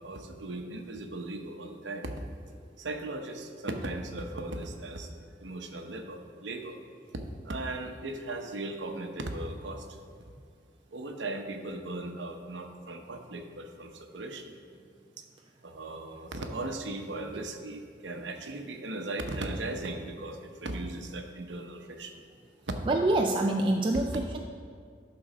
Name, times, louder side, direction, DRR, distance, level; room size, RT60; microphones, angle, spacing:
voice 1, 0.0-2.1 2.8-5.1 5.4-6.8 7.1-9.9 10.9-14.5 15.2-15.3 15.6-22.1 22.7-22.8 23.9-24.0, right 2 dB, 80° right, 5 dB, 0.8 m, -37 dB
voice 2, 22.9-24.4, right 2 dB, 30° right, 2 dB, 0.3 m, -26 dB
11.5 x 3.9 x 5.1 m, 2.2 s
head